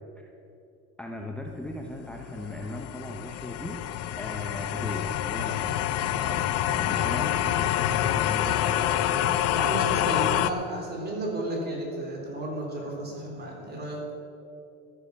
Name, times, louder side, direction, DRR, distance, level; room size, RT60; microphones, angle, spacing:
voice 1, 1.0-9.4, left 1 dB, 5° left, 1 dB, 0.9 m, -38 dB
sound 1, 1.7-10.5, left 12 dB, 55° left, 0.7 m, -27 dB
voice 2, 6.9-7.3 9.5-14.1, right 1 dB, 35° right, -1 dB, 3.8 m, -33 dB
13.0 x 9.9 x 7.1 m, 2.7 s
cardioid pair, 135°, 30 cm